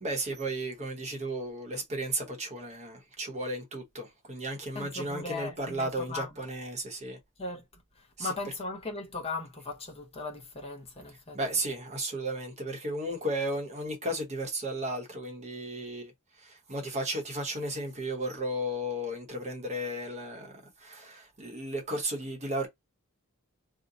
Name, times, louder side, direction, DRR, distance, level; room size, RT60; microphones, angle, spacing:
voice 1, 0.0-7.2 8.2-8.3 11.3-16.1 16.4-22.7, right 1 dB, 30° right, 0.9 m, -34 dB
voice 2, 4.7-6.3 7.4-11.4, left 3 dB, 25° left, 0.8 m, -38 dB
2.7 x 2.1 x 3.7 m
head